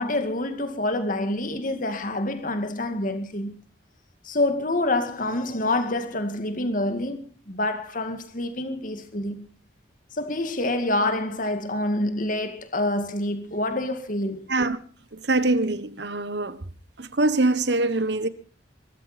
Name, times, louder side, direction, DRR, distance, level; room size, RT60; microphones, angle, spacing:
voice 1, 0.0-3.5 4.2-9.5 10.1-14.4, left 1 dB, 45° left, 2.2 m, -27 dB
voice 2, 15.3-16.6 17.0-18.3, right 2 dB, 65° right, 1.3 m, -23 dB
22.5 x 14.0 x 4.4 m
head